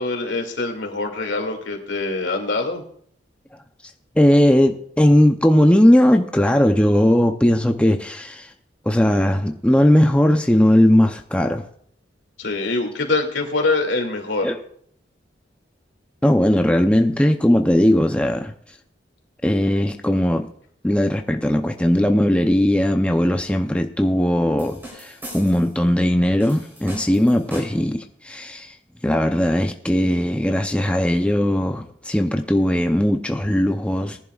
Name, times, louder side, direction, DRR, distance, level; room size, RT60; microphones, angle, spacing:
voice 1, 0.0-2.8 12.4-14.5, left 3 dB, 80° left, 2.5 m, -24 dB
voice 2, 4.2-8.5 8.9-11.6 14.4-14.6 16.2-18.5 19.4-20.5 20.8-28.7 29.0-34.2, left 1 dB, 5° left, 0.6 m, -18 dB
sound 1, 24.6-25.8 26.4-28.0, equal, 10° right, 3.7 m, -39 dB
19.0 x 11.0 x 2.4 m
head